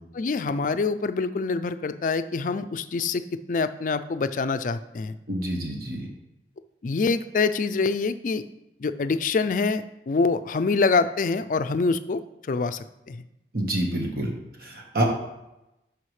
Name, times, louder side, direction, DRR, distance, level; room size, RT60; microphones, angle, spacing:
voice 1, 0.1-3.2 3.5-5.2 6.8-8.4 8.8-12.2 12.5-13.2, left 4 dB, 45° left, 11 dB, 0.4 m, -25 dB
voice 2, 5.3-6.1 13.5-14.3 14.6-15.0, right 1 dB, 55° right, 1 dB, 1.4 m, -27 dB
11.5 x 4.9 x 3.2 m, 0.91 s
head